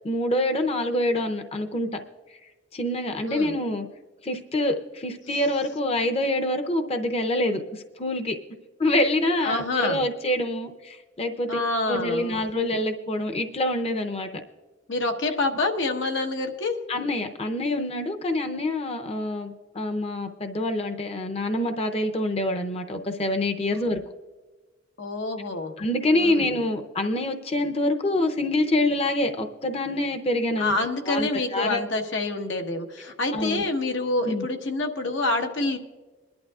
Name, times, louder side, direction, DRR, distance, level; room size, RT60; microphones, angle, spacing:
voice 1, 0.0-2.0 2.7-3.9 4.2-8.3 8.8-11.6 11.9-14.4 16.9-24.0 25.8-30.8 31.1-31.8 33.3-33.6 34.2-34.4, left 1 dB, 35° left, 6 dB, 0.6 m, -26 dB
voice 2, 9.4-10.0 11.5-12.4 14.9-16.8 25.0-25.7 26.1-26.5 30.6-35.8, left 2 dB, 90° left, 4 dB, 1.3 m, -27 dB
22.0 x 11.5 x 2.4 m, 1.3 s
head